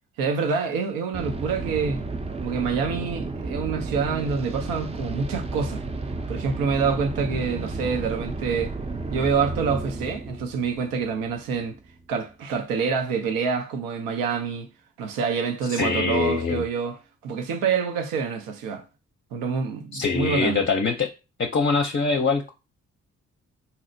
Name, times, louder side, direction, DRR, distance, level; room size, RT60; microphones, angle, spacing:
voice 1, 0.2-2.0 2.4-5.8 6.3-8.7 9.1-11.8 12.1-14.7 15.0-18.8 19.3-20.6, right 5 dB, 85° right, 0.6 m, -26 dB
sound 1, 1.1-11.9, right 3 dB, 20° right, 0.5 m, -32 dB
voice 2, 15.7-16.6 19.9-21.1 21.4-22.5, left 4 dB, 35° left, 0.6 m, -23 dB
4.1 x 2.0 x 2.6 m
hypercardioid pair, 45°, 33 cm